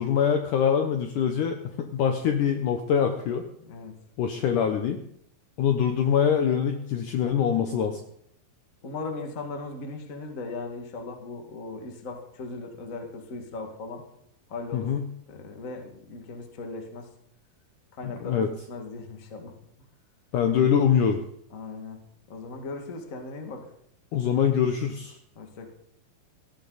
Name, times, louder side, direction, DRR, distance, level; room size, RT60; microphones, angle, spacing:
voice 1, 0.0-3.4 4.2-5.0 5.6-8.0 14.7-15.1 18.0-18.5 20.3-21.2 24.1-25.2, left 8 dB, 70° left, 5 dB, 2.0 m, -24 dB
voice 2, 3.6-3.9 7.7-8.0 8.8-14.0 14.5-14.9 15.3-17.1 18.0-19.5 19.8-19.9 21.5-22.0 22.3-23.6 25.3-25.7, left 3 dB, 35° left, 3 dB, 1.3 m, -38 dB
18.0 x 14.5 x 4.0 m, 0.72 s
omnidirectional pair, 4.6 m